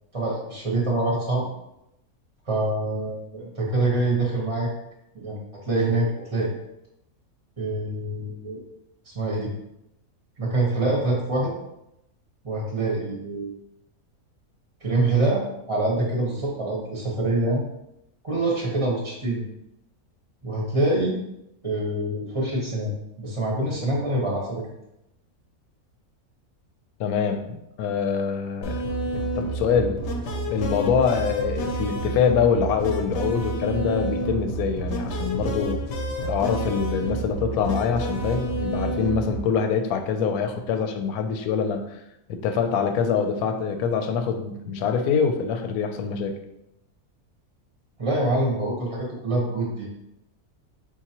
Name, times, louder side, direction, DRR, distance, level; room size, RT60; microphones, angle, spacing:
voice 1, 0.1-1.5 2.5-4.7 5.1-6.5 7.6-8.6 9.0-9.5 10.4-11.5 12.4-13.5 14.8-17.6 18.2-19.5 20.4-21.2 21.6-22.9 23.2-24.6 48.0-49.9, right 2 dB, 25° right, -3 dB, 0.7 m, -25 dB
voice 2, 27.0-28.8 29.1-30.0 30.5-35.8 36.2-42.0 42.3-46.3, left 6 dB, 85° left, 6 dB, 1.1 m, -24 dB
sound 1, 28.6-39.4, right 1 dB, 60° left, 0.8 m, -29 dB
4.6 x 3.6 x 2.9 m, 0.84 s
omnidirectional pair, 1.5 m